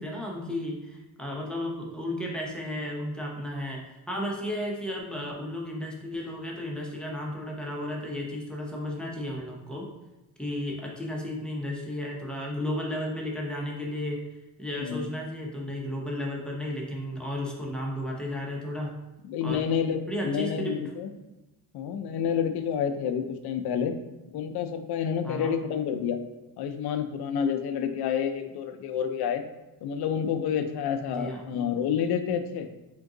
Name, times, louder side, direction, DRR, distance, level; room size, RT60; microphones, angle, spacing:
voice 1, 0.0-9.9 10.4-14.2 14.6-18.9 19.4-19.6 20.1-20.8 25.2-25.5 31.0-31.5, left 1 dB, ahead, -2 dB, 0.7 m, -33 dB
voice 2, 19.2-21.1 21.7-23.9 24.3-26.2 26.6-29.4 29.8-32.7, left 8 dB, 90° left, 8 dB, 0.5 m, -29 dB
3.7 x 2.6 x 3.7 m, 1.0 s
cardioid pair, 115°, 37 cm